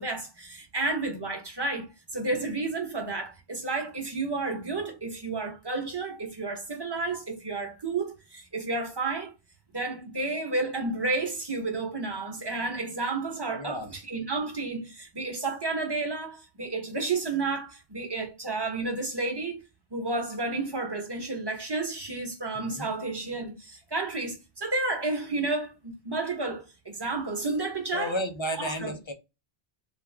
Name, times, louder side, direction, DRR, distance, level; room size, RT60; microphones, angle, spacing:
voice 1, 0.0-9.3 9.7-19.6 19.9-28.2 28.6-28.9, right 3 dB, 25° right, 1.0 m, -31 dB
voice 2, 13.5-13.9 22.5-22.9 27.9-29.1, left 1 dB, 40° left, 0.5 m, -33 dB
3.5 x 2.3 x 3.3 m
omnidirectional pair, 1.0 m